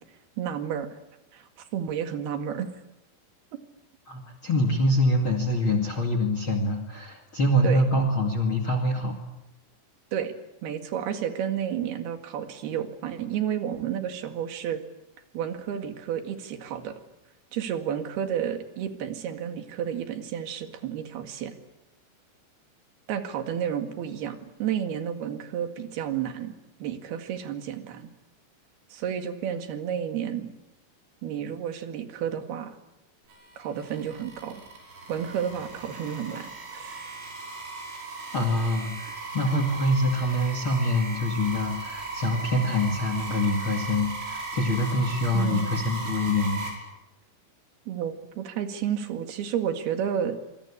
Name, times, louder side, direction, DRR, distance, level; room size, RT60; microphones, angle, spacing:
voice 1, 0.4-0.9 1.3-2.7 7.6-7.9 10.1-10.3 10.6-14.8 15.3-16.9 17.5-21.6 23.1-26.5 26.8-28.1 28.9-30.5 31.2-32.8 33.6-34.6 35.1-37.1 45.3-45.8 47.9-50.4, right 9 dB, 60° right, 7 dB, 3.7 m, -31 dB
voice 2, 4.1-9.2 38.3-46.7, left 1 dB, 40° left, 7 dB, 2.1 m, -25 dB
sound 1, 33.3-46.7, right 2 dB, 80° right, 8.3 m, -37 dB
26.5 x 24.0 x 8.6 m, 0.93 s
omnidirectional pair, 5.6 m